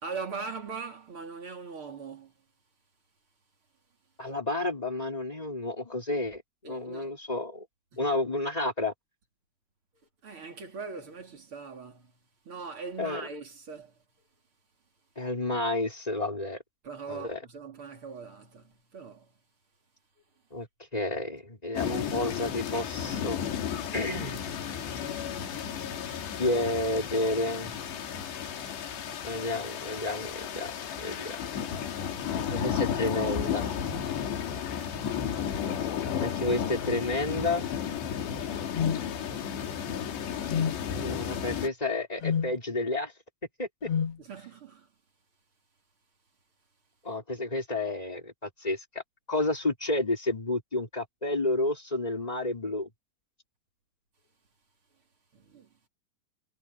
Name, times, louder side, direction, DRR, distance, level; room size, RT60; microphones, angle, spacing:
voice 1, 0.0-2.3 6.6-7.1 7.9-8.0 10.2-12.1 12.5-13.9 16.8-19.3 39.3-39.4 44.2-44.9 55.3-55.7, right 5 dB, 35° right, 3.5 m, -41 dB
voice 2, 4.2-7.6 8.0-8.9 13.0-13.3 15.2-16.6 17.1-17.4 20.5-20.7 20.9-23.4 23.9-24.4 26.4-27.7 29.2-30.7 31.0-31.4 32.5-33.6 36.2-37.6 40.9-43.1 43.6-43.9 47.0-49.0 49.3-52.9, left 2 dB, 10° left, 4.3 m, -30 dB
sound 1, 21.8-41.7, left 8 dB, 85° left, 4.8 m, -33 dB
sound 2, 38.7-39.0 40.5-40.8 42.2-42.5 43.9-44.2, left 7 dB, 55° left, 1.7 m, -28 dB
omnidirectional pair, 4.8 m